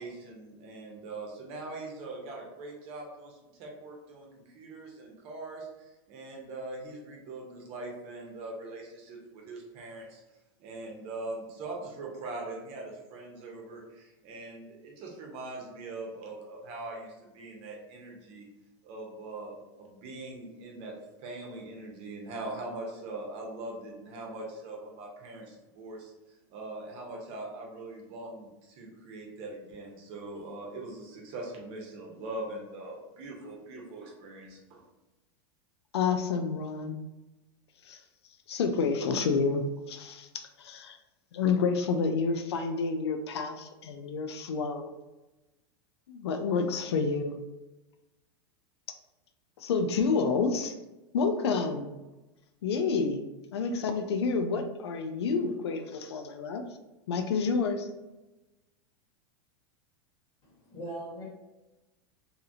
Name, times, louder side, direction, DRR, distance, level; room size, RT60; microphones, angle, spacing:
voice 1, 0.0-10.2 10.6-18.5 18.8-26.1 26.5-34.8, right 2 dB, 50° right, -1 dB, 0.9 m, -42 dB
voice 2, 35.9-37.0 37.9-38.0 38.5-39.6 39.9-40.3 40.6-41.0 41.3-44.9 46.1-47.4 49.6-50.7 51.1-51.9 52.6-53.2 53.5-56.6 57.1-57.9, left 5 dB, 90° left, 6 dB, 0.4 m, -29 dB
voice 3, 60.4-61.2, right 1 dB, 35° left, -5 dB, 1.4 m, -40 dB
2.8 x 2.4 x 2.7 m, 1.1 s
hypercardioid pair, 120°, 14 cm